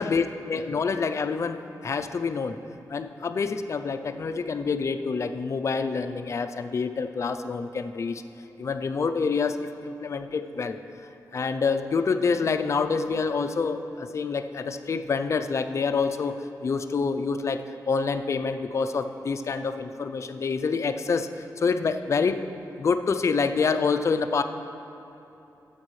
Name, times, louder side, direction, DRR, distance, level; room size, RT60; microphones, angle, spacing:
voice 1, 0.0-2.6 2.9-8.2 8.6-16.4 16.6-22.4 22.8-24.4, left 5 dB, 45° left, 8 dB, 0.4 m, -27 dB
13.5 x 8.2 x 3.2 m, 3.0 s
wide cardioid pair, 120°, 7 cm